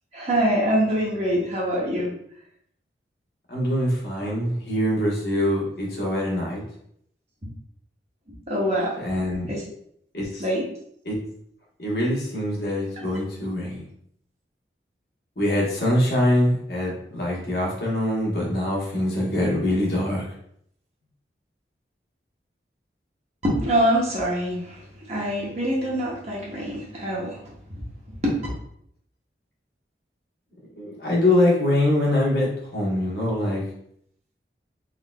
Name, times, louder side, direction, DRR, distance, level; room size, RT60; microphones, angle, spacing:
voice 1, 0.1-2.1 8.5-8.9 9.5-9.6 10.4-10.6 23.4-24.8 25.1-27.4 28.1-28.4, equal, 35° right, -4 dB, 0.9 m, -24 dB
voice 2, 3.5-6.6 9.0-9.5 10.1-10.4 11.0-11.2 11.8-13.8 15.4-20.2 30.8-33.6, left 1 dB, 60° left, -4 dB, 1.1 m, -24 dB
3.7 x 3.1 x 2.2 m, 0.70 s
head